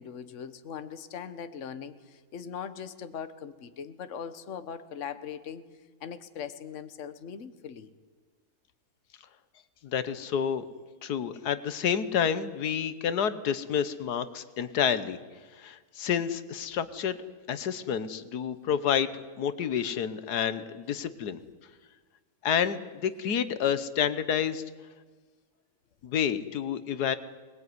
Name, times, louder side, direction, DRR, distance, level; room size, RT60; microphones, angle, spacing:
voice 1, 0.0-5.6 6.0-7.9, left 7 dB, 55° left, 12 dB, 1.5 m, -40 dB
voice 2, 9.8-10.6 11.0-15.2 15.5-17.2 17.5-21.4 22.4-24.6 26.0-27.2, left 8 dB, 90° left, 14 dB, 1.6 m, -29 dB
22.0 x 20.5 x 9.6 m, 1.4 s
omnidirectional pair, 1.7 m